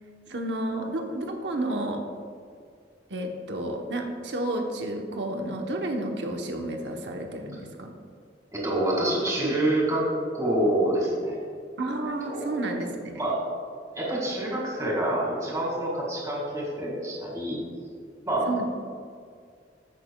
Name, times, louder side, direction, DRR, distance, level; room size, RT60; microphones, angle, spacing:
voice 1, 0.3-2.0 3.1-7.9 9.4-9.5 11.8-13.1 18.5-18.7, right 1 dB, 70° right, 2 dB, 0.9 m, -31 dB
voice 2, 8.5-10.0 10.3-11.4 12.2-12.6 13.2-13.4 13.9-17.6 18.3-18.5, right 1 dB, 20° right, -4 dB, 2.0 m, -27 dB
15.5 x 6.5 x 2.3 m, 2.1 s
head